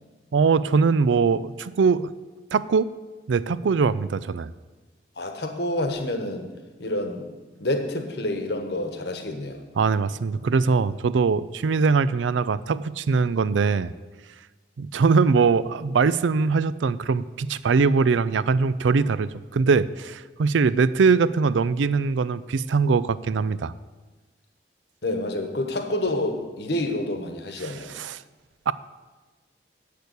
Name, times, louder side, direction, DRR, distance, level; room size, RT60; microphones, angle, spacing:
voice 1, 0.3-2.1 2.5-2.9 3.3-4.5 9.8-13.9 14.8-23.7 27.6-28.2 28.7-28.8, right 5 dB, 85° right, 17 dB, 0.4 m, -22 dB
voice 2, 5.2-6.5 6.8-7.3 7.6-9.6 25.0-27.9, left 1 dB, 65° left, 6 dB, 1.2 m, -28 dB
8.3 x 6.7 x 8.1 m, 1.3 s
head